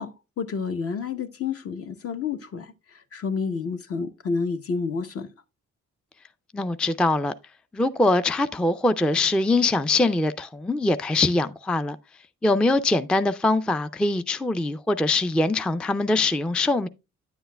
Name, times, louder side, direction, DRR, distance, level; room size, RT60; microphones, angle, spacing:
voice 1, 0.0-5.3, left 5 dB, 50° left, 0.9 m, -30 dB
voice 2, 6.5-7.3 7.7-12.0 12.4-16.9, left 2 dB, 5° left, 0.3 m, -23 dB
9.4 x 7.9 x 2.2 m
cardioid pair, 90°, 30 cm